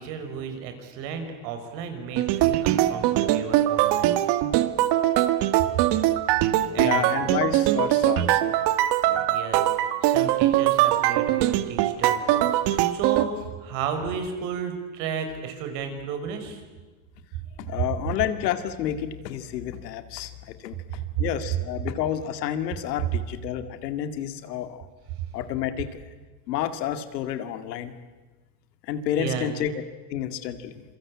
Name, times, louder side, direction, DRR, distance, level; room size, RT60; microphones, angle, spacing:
voice 1, 0.0-4.2 5.6-5.7 6.7-7.1 9.3-9.7 10.0-16.6 21.1-21.2 29.2-29.5, right 7 dB, 70° right, 7 dB, 5.6 m, -33 dB
sound 1, 2.2-13.3, right 14 dB, 55° right, 1.7 m, -22 dB
voice 2, 6.8-8.5 9.1-9.2 17.6-24.9 25.3-26.0 26.5-27.9 28.8-29.7 30.1-30.8, left 10 dB, 90° left, 9 dB, 2.2 m, -30 dB
27.0 x 23.5 x 8.6 m, 1.3 s
supercardioid pair, 110°, 48 cm